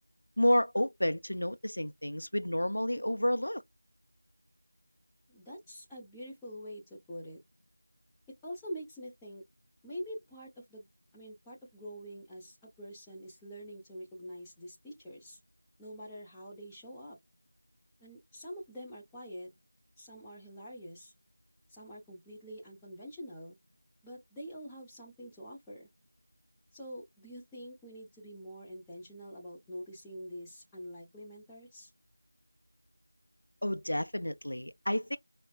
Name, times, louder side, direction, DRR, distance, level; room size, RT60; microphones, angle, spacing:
voice 1, 0.4-3.6 33.6-35.2, left 1 dB, 80° left, 0.6 m, -30 dB
voice 2, 5.3-7.4 8.3-9.4 9.8-10.8 11.1-15.4 15.8-17.2 18.0-19.5 20.0-21.1 21.7-23.6 24.0-25.9 26.7-31.9, equal, 5° left, 0.8 m, -45 dB
5.0 x 2.1 x 2.3 m
figure-of-eight pair, 175°, 0 cm